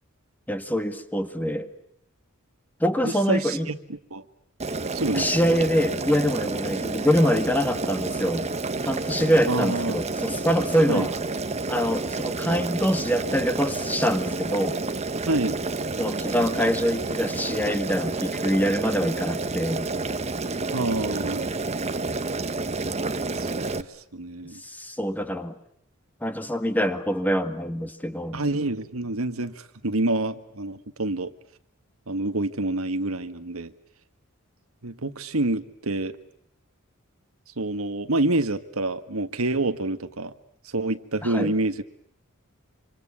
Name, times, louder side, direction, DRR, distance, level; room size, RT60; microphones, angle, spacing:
voice 1, 0.5-1.7 2.8-3.7 5.2-8.5 8.8-11.1 11.7-14.8 16.0-19.9 24.6-25.5 26.2-28.4 41.2-41.5, equal, 10° left, 9 dB, 1.7 m, -25 dB
voice 2, 3.0-4.2 4.9-5.3 9.5-10.0 10.9-11.1 15.3-15.6 20.7-21.5 23.3-23.9 24.1-24.6 28.3-31.3 32.1-33.7 34.8-36.2 37.6-40.3 40.7-41.8, right 2 dB, 90° right, 9 dB, 1.6 m, -27 dB
Boiling, 4.6-23.8, right 3 dB, 30° right, 1.1 m, -29 dB
26.5 x 26.0 x 8.6 m, 0.68 s
head